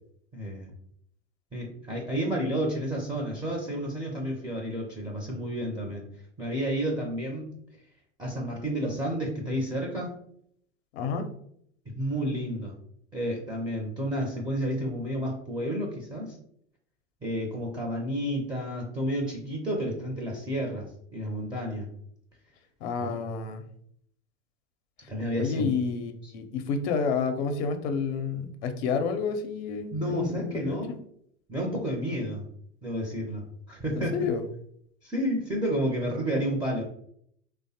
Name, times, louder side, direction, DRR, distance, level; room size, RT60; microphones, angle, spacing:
voice 1, 0.3-0.7 1.5-6.1 6.4-7.5 8.2-10.1 11.9-12.7 13.1-16.4 17.2-21.9 23.0-23.1 25.1-25.7 26.2-26.3 29.9-30.9 31.5-32.5 32.8-34.3 35.0-36.8, equal, 10° right, -2 dB, 0.5 m, -31 dB
voice 2, 10.9-11.3 22.8-23.6 25.3-31.0 33.9-34.4, left 5 dB, 60° left, 7 dB, 0.5 m, -30 dB
3.1 x 2.0 x 2.7 m, 0.68 s
hypercardioid pair, 90°, 36 cm